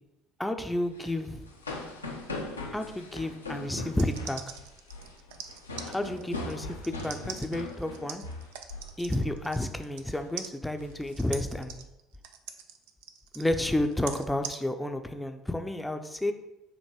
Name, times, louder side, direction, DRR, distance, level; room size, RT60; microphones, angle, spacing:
voice 1, 0.4-1.4 2.7-4.4 5.8-8.2 9.0-11.8 13.3-16.3, left 1 dB, 5° left, 6 dB, 0.6 m, -31 dB
sound 1, 0.9-9.0 9.2-9.5 9.9-10.2 10.6-11.8, left 2 dB, 85° left, 0.6 m, -40 dB
sound 2, 3.9-10.1 10.4-14.6, right 8 dB, 65° right, 0.4 m, -43 dB
7.2 x 2.9 x 4.6 m, 0.92 s
figure-of-eight pair, 55°, 0 cm